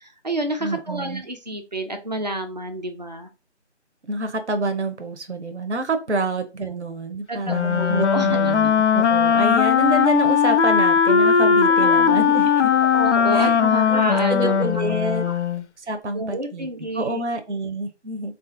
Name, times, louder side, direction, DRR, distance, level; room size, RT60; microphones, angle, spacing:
voice 1, 0.0-3.3 7.3-8.7 11.7-14.6 15.2-15.3 16.1-17.2, right 1 dB, 40° right, 5 dB, 0.4 m, -29 dB
voice 2, 0.6-1.2 4.1-12.7 13.3-13.6 13.9-15.2 15.8-16.7 16.9-18.3, right 2 dB, 75° right, 7 dB, 0.7 m, -27 dB
Wind instrument woodwind instrument, 7.5-15.6, left 7 dB, 75° left, 0.5 m, -18 dB
3.7 x 2.5 x 2.5 m, 0.29 s
figure-of-eight pair, 160°, 35 cm